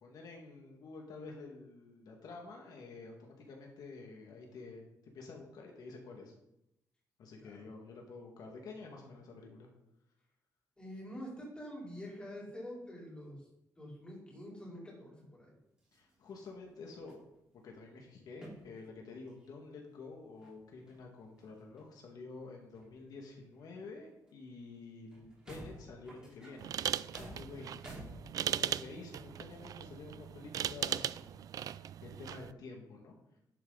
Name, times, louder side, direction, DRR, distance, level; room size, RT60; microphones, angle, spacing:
voice 1, 0.0-6.3 7.2-9.7 15.9-17.2 17.6-26.7 27.2-27.9 28.4-33.4, left 3 dB, 70° left, 1 dB, 2.0 m, -49 dB
voice 2, 10.8-13.4 13.8-15.6, equal, 15° left, -4 dB, 4.3 m, -46 dB
sound 1, 15.8-16.6 16.9-17.7 18.4-18.9 19.3-19.6 20.0-20.1 20.4-21.9 22.7-23.7 24.3-24.4 24.7-24.8 25.1-28.8 29.5-29.6, right 1 dB, 10° right, 4.3 m, -53 dB
sound 2, 26.6-32.5, right 10 dB, 60° right, 0.3 m, -38 dB
11.5 x 8.5 x 4.0 m, 0.83 s
wide cardioid pair, 145°, 7 cm